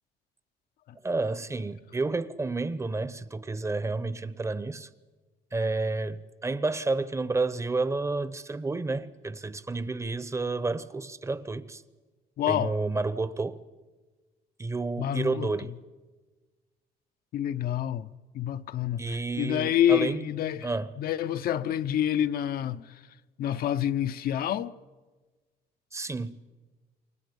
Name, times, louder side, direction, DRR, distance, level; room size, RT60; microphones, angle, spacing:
voice 1, 1.0-4.9 5.5-11.8 12.5-13.6 14.6-15.7 19.0-20.2 20.6-20.9 25.9-26.4, right 3 dB, 15° right, 0.9 m, -30 dB
voice 2, 12.4-12.7 15.0-15.5 17.3-18.1 18.3-20.7 21.0-23.0 23.4-24.7, left 10 dB, 60° left, 0.7 m, -27 dB
29.0 x 24.0 x 5.3 m
cardioid pair, 110°, 17 cm